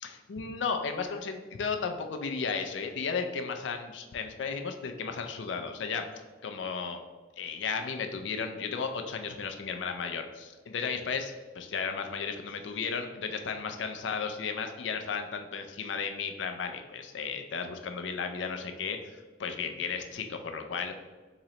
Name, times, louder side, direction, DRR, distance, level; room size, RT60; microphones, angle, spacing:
voice 1, 0.0-6.1 6.4-7.0 7.4-21.0, left 5 dB, 90° left, 6 dB, 0.4 m, -34 dB
3.8 x 3.1 x 2.8 m, 1.3 s
head